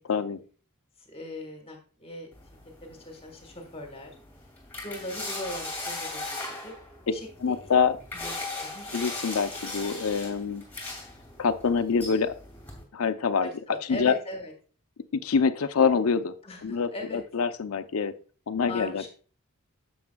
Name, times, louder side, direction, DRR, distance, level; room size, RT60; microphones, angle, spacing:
voice 1, 0.1-0.4 7.4-7.9 8.9-10.6 11.4-12.4 12.9-13.5 13.9-14.2 15.2-16.3 16.6-18.1 18.5-19.1, left 5 dB, 75° left, 12 dB, 0.5 m, -25 dB
voice 2, 1.0-2.3 2.8-4.1 4.8-7.7 8.1-8.4 8.6-8.9 13.4-14.5 16.4-17.2 18.7-19.1, left 1 dB, 30° left, 3 dB, 1.4 m, -40 dB
sound 1, 2.3-12.8, left 2 dB, 10° left, 2.2 m, -39 dB
9.4 x 7.1 x 2.3 m, 0.39 s
head